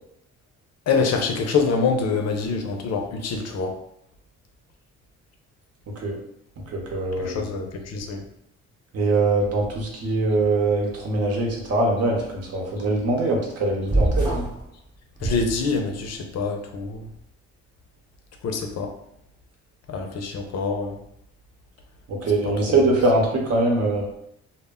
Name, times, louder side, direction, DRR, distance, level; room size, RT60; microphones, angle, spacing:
voice 1, 0.9-3.8 7.2-8.2 15.2-17.1 18.4-18.9 19.9-21.0 22.4-22.8, left 4 dB, 60° left, 3 dB, 0.5 m, -25 dB
voice 2, 6.7-7.5 8.9-14.5 22.1-24.0, right 2 dB, 55° right, 0 dB, 0.8 m, -22 dB
sound 1, 13.9-14.6 15.2-16.1, right 1 dB, 15° right, 0.7 m, -24 dB
2.1 x 2.0 x 3.5 m, 0.75 s
cardioid pair, 90°, 30 cm